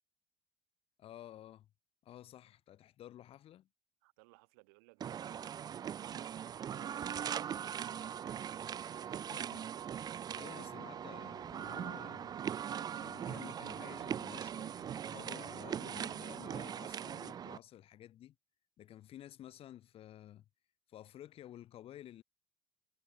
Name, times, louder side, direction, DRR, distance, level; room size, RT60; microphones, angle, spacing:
voice 1, 1.0-1.7 2.0-3.7 9.2-9.7 10.3-12.4 13.0-18.4 18.8-20.4 20.9-22.2, left 12 dB, 55° left, 2.3 m, -53 dB
voice 2, 4.0-9.1, right 30 dB, 85° right, 4.0 m, -64 dB
sound 1, 5.0-17.6, right 9 dB, 35° right, 0.4 m, -41 dB
supercardioid pair, 85°, 12 cm